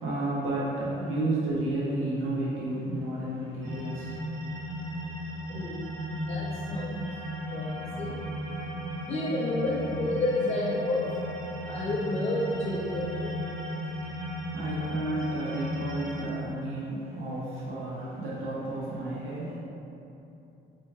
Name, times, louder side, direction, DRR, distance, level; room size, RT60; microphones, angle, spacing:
voice 1, 0.0-4.1 14.5-19.6, right 2 dB, 90° right, -7 dB, 0.7 m, -31 dB
sound 1, 3.6-16.2, equal, 75° right, 1.2 m, -35 dB
voice 2, 9.1-11.0 11.7-13.3, left 2 dB, 35° left, -4 dB, 0.4 m, -29 dB
4.5 x 3.0 x 2.3 m, 2.8 s
cardioid pair, 90°, 20 cm